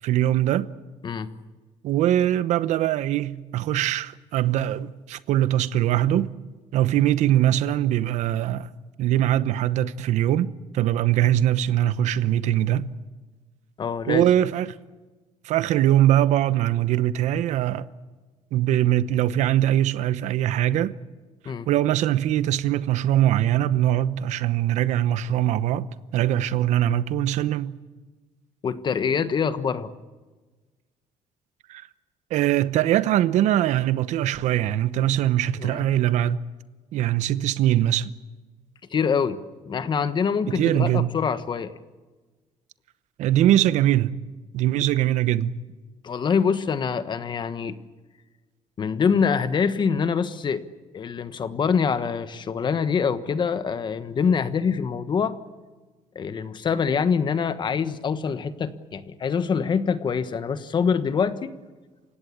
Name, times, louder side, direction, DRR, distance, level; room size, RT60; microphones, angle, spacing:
voice 1, 0.0-0.7 1.8-6.3 6.7-8.7 9.0-12.9 14.1-14.7 15.4-17.9 18.5-20.9 21.4-27.8 31.7-31.8 32.3-36.4 36.9-38.1 40.5-41.1 43.2-44.1 44.5-45.5, right 12 dB, 80° right, 0.9 m, -22 dB
voice 2, 13.8-14.3 21.4-21.7 28.6-29.9 35.5-35.8 38.9-39.4 39.6-41.7 46.0-47.7 48.8-50.6 50.9-55.3 56.1-61.5, left 6 dB, 40° left, 1.3 m, -25 dB
28.0 x 16.5 x 8.7 m
cardioid pair, 120°, 12 cm